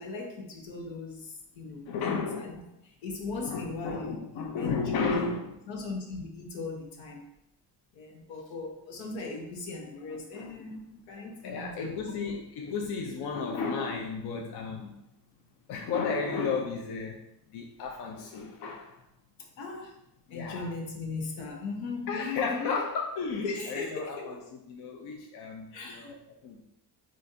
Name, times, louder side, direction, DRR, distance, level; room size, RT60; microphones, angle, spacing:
voice 1, 0.0-2.6 2.9-5.3 5.7-7.2 7.9-12.1 19.6-19.9 20.3-22.8 23.4-24.4 25.7-26.1, left 3 dB, 85° left, 1 dB, 1.2 m, -38 dB
voice 2, 1.9-2.5 3.4-5.5 10.1-10.8 11.1-14.9 15.7-17.2 17.5-19.0 20.3-20.7 22.1-26.6, left 5 dB, 60° left, 1 dB, 0.7 m, -34 dB
7.7 x 2.6 x 2.7 m, 0.82 s
cardioid pair, 135°, 45 cm